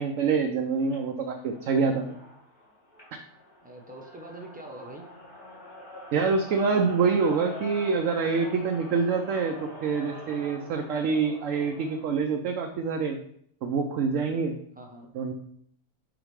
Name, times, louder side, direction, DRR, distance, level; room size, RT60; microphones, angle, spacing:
voice 1, 0.0-2.1 6.1-9.5 9.8-13.2 13.6-14.6 15.1-15.3, right 5 dB, 70° right, 3 dB, 0.9 m, -26 dB
sound 1, 0.8-12.2, left 1 dB, 40° left, 2.3 m, -45 dB
voice 2, 3.6-5.0 14.8-15.1, right 1 dB, 5° right, 0 dB, 0.8 m, -44 dB
5.1 x 4.2 x 4.7 m, 0.66 s
omnidirectional pair, 1.5 m